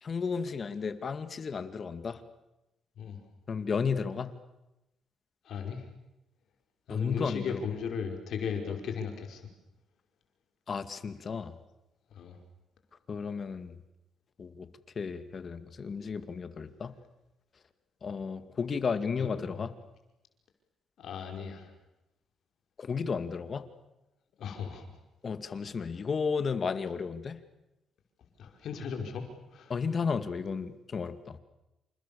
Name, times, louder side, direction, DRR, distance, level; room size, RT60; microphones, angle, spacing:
voice 1, 0.0-2.2 3.5-4.3 6.9-7.6 10.7-11.6 13.1-13.8 14.4-14.7 15.0-16.9 18.0-19.7 22.8-23.6 25.2-27.4 29.7-31.4, left 5 dB, 45° left, 11 dB, 2.3 m, -33 dB
voice 2, 5.5-5.9 6.9-9.5 12.1-12.4 19.2-19.7 21.0-21.7 24.4-24.9 28.4-29.7, left 6 dB, 70° left, 4 dB, 5.2 m, -36 dB
29.0 x 28.0 x 7.2 m, 0.94 s
cardioid pair, 90°, 0 cm